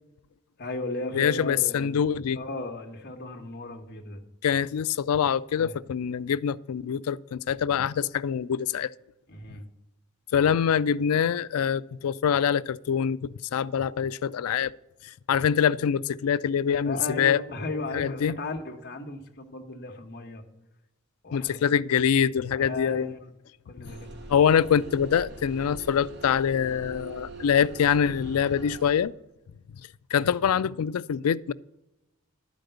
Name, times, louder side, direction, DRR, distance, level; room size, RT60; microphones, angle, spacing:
voice 1, 0.6-2.1 2.3-4.2 5.6-5.8 9.3-9.6 16.8-20.4 21.2-21.6 22.5-23.3 23.6-24.2, left 2 dB, 45° left, 1.3 m, -36 dB
voice 2, 1.1-2.4 4.4-8.9 10.3-14.7 15.3-17.4 17.9-18.3 21.3-23.1 24.3-29.1 30.1-31.5, left 8 dB, 75° left, 0.4 m, -24 dB
sound 1, 23.8-29.0, right 2 dB, 50° right, 1.2 m, -43 dB
11.5 x 5.2 x 7.9 m
head